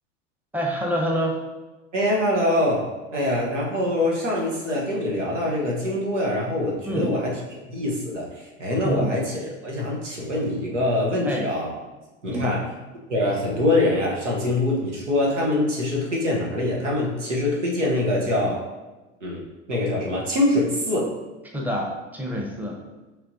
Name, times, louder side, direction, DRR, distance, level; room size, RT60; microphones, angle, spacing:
voice 1, 0.5-1.4 6.8-7.1 8.8-9.1 11.2-11.5 12.3-12.6 21.5-22.8, equal, 5° right, -1 dB, 0.9 m, -27 dB
voice 2, 1.9-2.9 3.1-7.3 7.7-11.7 12.2-12.6 13.1-18.6 19.2-21.1, left 1 dB, 85° right, -3 dB, 1.0 m, -24 dB
5.6 x 3.6 x 2.6 m, 1.1 s
hypercardioid pair, 75°, 36 cm